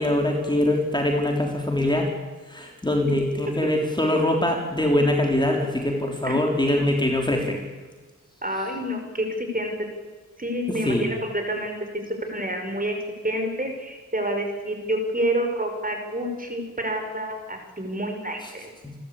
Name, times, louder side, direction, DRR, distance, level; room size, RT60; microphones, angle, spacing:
voice 1, 0.0-2.1 2.5-7.6 10.8-11.1 18.8-19.0, left 1 dB, 15° left, 1 dB, 3.7 m, -23 dB
voice 2, 8.4-9.3 9.5-9.7 10.4-11.7 12.1-13.0 13.2-18.7, right 1 dB, 25° right, 4 dB, 5.8 m, -28 dB
28.5 x 13.0 x 8.6 m, 1.3 s
cardioid pair, 70°, 32 cm